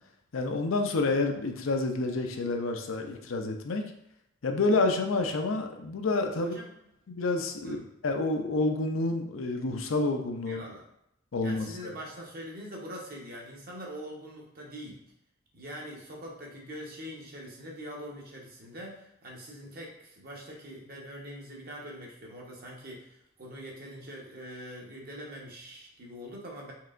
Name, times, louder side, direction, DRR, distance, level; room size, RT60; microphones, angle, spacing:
voice 1, 0.3-3.8 4.4-6.5 7.1-7.8 8.0-10.6 11.3-11.9, left 3 dB, 85° left, 4 dB, 0.6 m, -29 dB
voice 2, 10.5-10.8 11.4-15.0 15.5-26.7, equal, 50° right, -2 dB, 1.0 m, -43 dB
4.6 x 3.3 x 2.5 m, 0.79 s
head